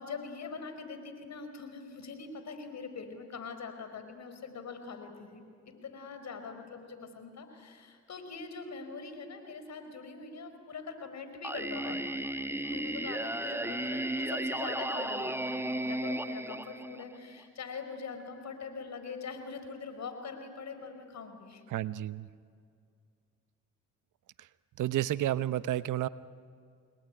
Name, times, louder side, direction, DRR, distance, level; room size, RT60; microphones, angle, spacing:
voice 1, 0.0-12.0 12.5-21.6, left 5 dB, 60° left, 8 dB, 5.0 m, -43 dB
Singing, 11.4-17.4, right 1 dB, 10° right, 1.3 m, -34 dB
voice 2, 21.7-22.3 24.8-26.1, right 13 dB, 75° right, 15 dB, 1.0 m, -31 dB
29.0 x 20.5 x 9.9 m, 2.3 s
supercardioid pair, 60°, 31 cm